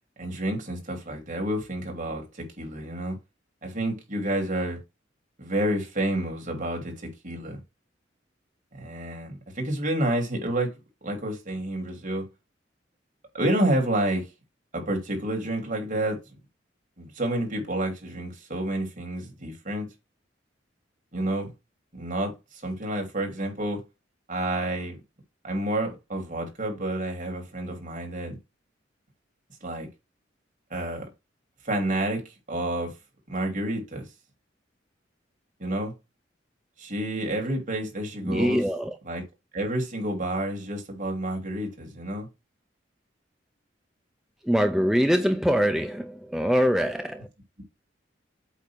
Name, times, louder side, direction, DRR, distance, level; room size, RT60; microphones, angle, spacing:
voice 1, 0.2-2.2 2.6-3.2 3.6-4.8 5.4-6.9 7.2-7.6 8.7-10.7 11.0-12.3 13.3-14.2 14.7-16.2 17.0-19.9 21.1-21.5 21.9-22.3 22.6-23.8 24.3-25.0 25.4-28.4 29.6-29.9 30.7-31.0 31.6-32.2 32.5-32.9 33.3-34.0 35.6-35.9 36.8-38.6 39.0-39.2 39.5-42.3, right 1 dB, 45° right, 2.7 m, -29 dB
voice 2, 38.2-39.0 44.4-47.3, equal, ahead, 0.5 m, -23 dB
8.3 x 2.8 x 6.1 m
head